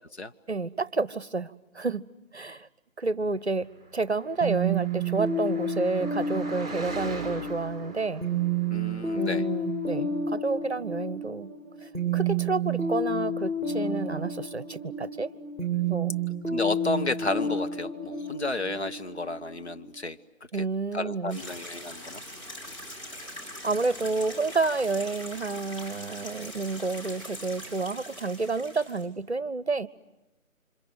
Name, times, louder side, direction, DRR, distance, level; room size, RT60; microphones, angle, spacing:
voice 1, 0.5-2.7 3.0-8.2 9.1-11.5 11.8-15.3 15.8-16.2 20.5-21.4 23.6-29.9, right 3 dB, 50° right, 19 dB, 0.9 m, -30 dB
Car passing by, 3.8-9.7, right 2 dB, 30° right, 5.1 m, -42 dB
sound 1, 4.4-20.0, right 2 dB, 10° left, 5.3 m, -30 dB
voice 2, 8.7-9.4 16.5-20.2 20.5-20.6 20.9-22.2, left 2 dB, 50° left, 8 dB, 1.2 m, -32 dB
sound 2, 21.3-29.1, left 1 dB, 25° left, 6.0 m, -42 dB
29.0 x 26.5 x 7.6 m, 1.1 s
figure-of-eight pair, 160°, 41 cm